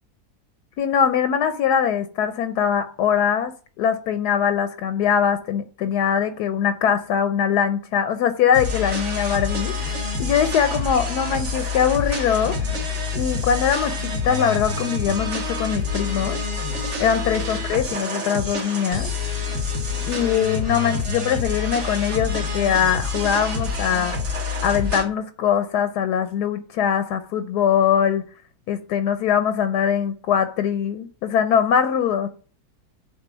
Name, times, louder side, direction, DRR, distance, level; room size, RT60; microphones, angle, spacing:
voice 1, 0.8-12.6 13.1-16.4 17.0-19.1 20.1-24.2 24.6-28.2 28.7-32.3, left 8 dB, 80° left, 1.3 m, -22 dB
sound 1, 8.5-25.0, left 3 dB, 45° right, 1.9 m, -27 dB
7.6 x 4.4 x 6.0 m
omnidirectional pair, 1.8 m